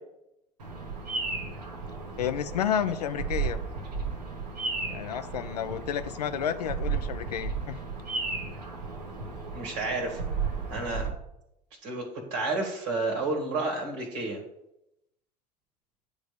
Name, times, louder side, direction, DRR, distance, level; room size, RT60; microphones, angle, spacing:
Bird vocalization bird call bird song, 0.6-11.1, right 4 dB, 80° right, 1.3 m, -34 dB
voice 1, 2.2-3.6 4.9-7.8, left 9 dB, 80° left, 10 dB, 0.5 m, -31 dB
voice 2, 9.5-10.2 10.7-11.1 11.8-14.4, right 3 dB, 65° right, 2 dB, 1.7 m, -30 dB
9.5 x 3.5 x 6.6 m, 0.85 s
figure-of-eight pair, 70°, 20 cm